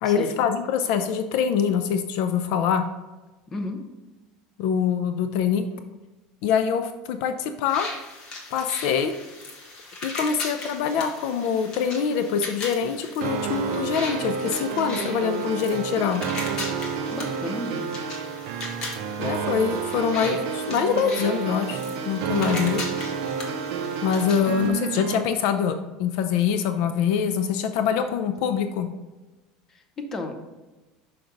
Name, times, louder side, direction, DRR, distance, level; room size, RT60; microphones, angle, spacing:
voice 1, 0.0-2.8 4.6-5.6 6.4-7.9 8.5-9.1 10.0-16.2 19.2-22.8 24.0-28.9, left 7 dB, 55° left, 8 dB, 0.4 m, -24 dB
sound 1, 7.7-24.7, left 2 dB, 30° left, 1.2 m, -38 dB
sound 2, 13.2-25.2, right 6 dB, 60° right, 0.5 m, -30 dB
voice 2, 17.1-17.9 29.7-30.5, left 2 dB, 15° left, 4 dB, 0.6 m, -33 dB
5.8 x 5.1 x 3.8 m, 1.1 s
cardioid pair, 170°, 2 cm